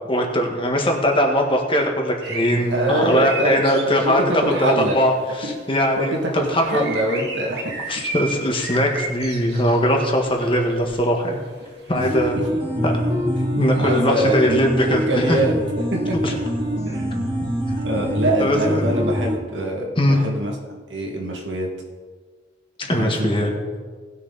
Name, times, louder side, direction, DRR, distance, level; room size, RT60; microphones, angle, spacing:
voice 1, 0.1-4.2 4.6-6.1 6.5-6.8 7.9-11.4 11.9-12.4 12.8-12.9 13.5-15.4 16.2-16.3 18.4-18.9 20.0-20.2 22.9-23.5, equal, 30° left, 2 dB, 1.6 m, -20 dB
sound 1, 2.2-4.1 4.6-4.7 6.2-6.4 6.7-9.8 10.0-11.0 11.8-12.0, right 3 dB, 65° right, 2.0 m, -32 dB
voice 2, 2.7-5.0 5.4-5.5 6.0-7.8 11.9-12.0 13.7-15.5 15.9-16.3 16.8-17.3 17.8-21.7 22.8-23.3, right 1 dB, 80° right, 0 dB, 2.1 m, -24 dB
sound 2, 11.9-19.4, equal, 30° right, 2.5 m, -24 dB
18.5 x 6.6 x 4.1 m, 1.5 s
head